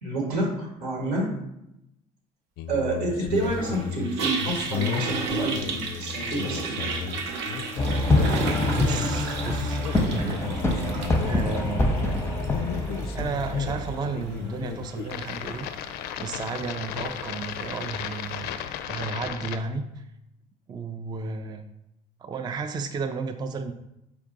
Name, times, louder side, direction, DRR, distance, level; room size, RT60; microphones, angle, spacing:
voice 1, 0.0-1.3 2.7-7.2, right 2 dB, 85° right, -1 dB, 1.5 m, -29 dB
sound 1, 2.6-19.6, left 9 dB, 55° left, 0.4 m, -34 dB
Toilet flush, 3.4-18.6, right 4 dB, 65° right, 0.7 m, -35 dB
sound 2, 7.8-15.3, left 1 dB, 10° left, 0.6 m, -26 dB
voice 2, 8.7-9.8 10.1-10.8 11.2-12.1 13.1-15.7 16.2-18.5 18.8-20.0 20.7-21.7 22.2-23.7, right 4 dB, 20° right, 7 dB, 0.3 m, -33 dB
4.6 x 2.4 x 3.9 m, 0.85 s
hypercardioid pair, 75°, 20 cm